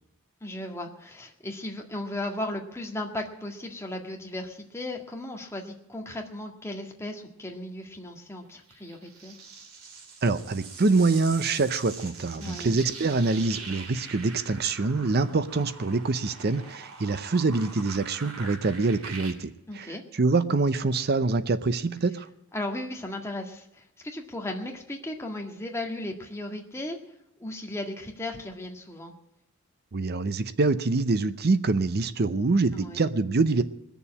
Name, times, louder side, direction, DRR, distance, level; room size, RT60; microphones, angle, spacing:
voice 1, 0.4-9.3 12.4-12.7 19.7-20.0 22.5-27.0 27.4-29.1 32.7-33.1, left 1 dB, 10° left, 1 dB, 1.8 m, -36 dB
sound 1, 8.7-19.3, right 4 dB, 90° right, 2.4 m, -43 dB
voice 2, 10.2-22.3 29.9-33.6, right 3 dB, 50° right, 13 dB, 0.6 m, -25 dB
20.0 x 7.1 x 8.6 m, 0.84 s
head